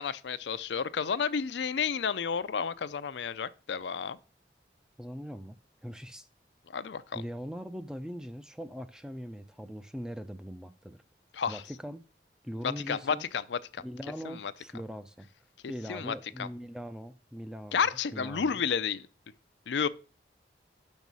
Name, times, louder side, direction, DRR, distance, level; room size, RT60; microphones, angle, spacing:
voice 1, 0.0-4.2 6.7-7.2 11.3-11.6 12.6-13.8 14.2-14.5 15.9-16.5 17.7-19.1 19.7-19.9, left 6 dB, 85° left, 0.5 m, -31 dB
voice 2, 5.0-6.3 7.1-11.0 11.5-12.0 12.4-13.3 13.8-15.3 15.7-18.5, equal, 5° right, 0.4 m, -41 dB
6.3 x 5.4 x 6.1 m
head